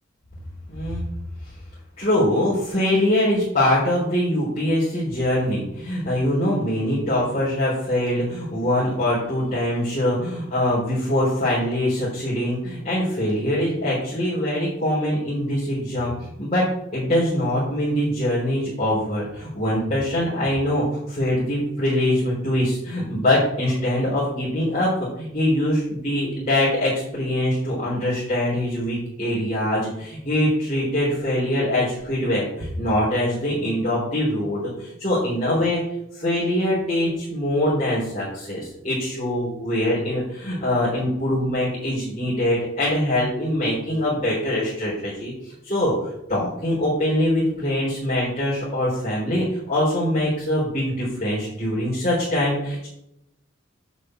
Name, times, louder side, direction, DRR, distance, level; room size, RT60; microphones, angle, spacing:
voice 1, 0.7-1.0 2.0-16.7 16.9-35.8 36.1-45.3 45.6-45.9 46.3-52.9, left 1 dB, 30° left, -9 dB, 4.2 m, -23 dB
8.2 x 5.8 x 7.9 m, 0.83 s
head